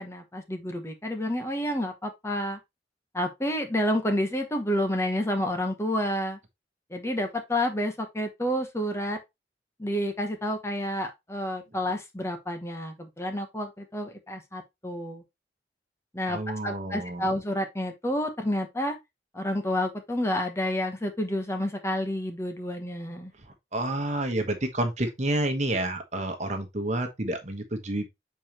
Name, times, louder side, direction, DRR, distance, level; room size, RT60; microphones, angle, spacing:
voice 1, 0.0-2.6 3.1-6.4 6.9-9.2 9.8-15.2 16.1-19.0 19.3-23.3, left 1 dB, 15° left, 1.0 m, -29 dB
voice 2, 16.3-17.3 23.7-28.1, right 1 dB, 40° right, 1.2 m, -29 dB
7.0 x 4.7 x 2.9 m
head